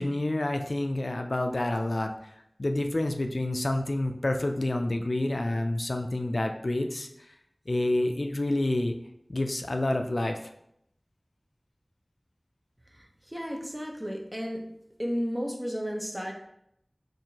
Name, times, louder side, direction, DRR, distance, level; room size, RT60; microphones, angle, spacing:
voice 1, 0.0-2.1 2.6-7.1 7.7-9.0 9.3-10.4, left 1 dB, 70° left, 5 dB, 0.3 m, -28 dB
voice 2, 13.0-14.6 15.0-16.3, equal, 20° right, 0 dB, 0.7 m, -33 dB
4.3 x 2.6 x 2.8 m, 0.76 s
wide cardioid pair, 45°, 0 cm